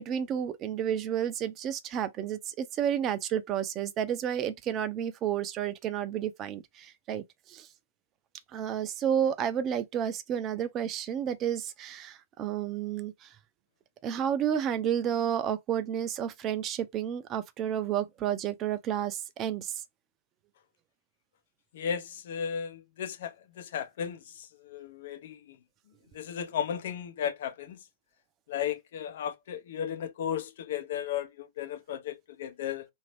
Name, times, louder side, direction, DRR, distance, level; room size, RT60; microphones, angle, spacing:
voice 1, 0.0-7.7 8.5-13.3 14.0-19.8, right 9 dB, 30° right, 0.6 m, -31 dB
voice 2, 21.7-25.6 26.1-27.8 28.5-32.9, left 8 dB, 60° left, 0.7 m, -35 dB
2.8 x 2.7 x 3.3 m
figure-of-eight pair, 105°, 0 cm